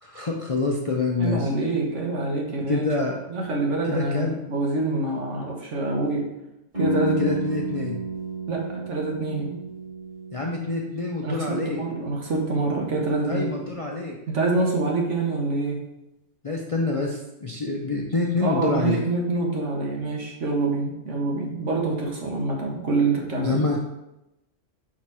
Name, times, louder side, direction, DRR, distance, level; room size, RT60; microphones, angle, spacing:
voice 1, 0.0-1.5 2.7-3.2 3.8-4.4 7.2-8.0 10.3-11.8 13.2-14.2 16.4-19.0 23.4-23.8, left 3 dB, 40° left, -1 dB, 0.5 m, -26 dB
voice 2, 1.2-2.8 3.3-6.3 6.8-7.3 8.5-9.6 11.2-13.5 14.3-15.8 18.4-23.6, right 3 dB, 70° right, 0 dB, 1.5 m, -26 dB
sound 1, 6.7-12.5, right 1 dB, 35° right, 2.4 m, -32 dB
5.0 x 4.4 x 4.6 m, 0.90 s
omnidirectional pair, 1.3 m